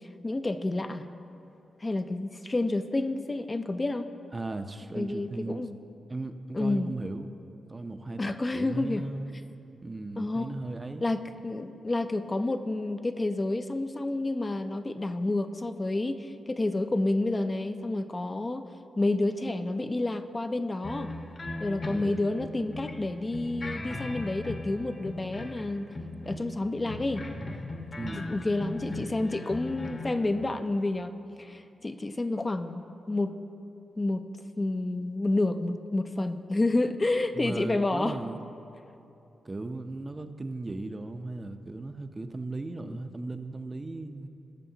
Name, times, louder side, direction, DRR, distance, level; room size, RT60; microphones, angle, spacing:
voice 1, 0.2-1.1 1.8-4.1 4.9-5.8 6.5-6.9 8.2-9.0 10.2-10.6 11.0-18.7 19.0-21.1 21.6-25.9 26.2-27.3 28.1-33.4 34.0-34.3 34.6-38.2, left 2 dB, 30° left, 8 dB, 0.5 m, -29 dB
voice 2, 4.3-5.6 6.1-7.3 7.7-9.4 9.8-11.1 21.9-22.2 28.0-28.3 37.3-38.4 39.4-44.3, right 2 dB, 30° right, 8 dB, 0.6 m, -37 dB
sound 1, 20.8-23.0 23.3-25.6 25.9-30.3, left 2 dB, 45° left, 1.2 m, -38 dB
18.5 x 6.8 x 2.8 m, 2.8 s
cardioid pair, 70°, 0 cm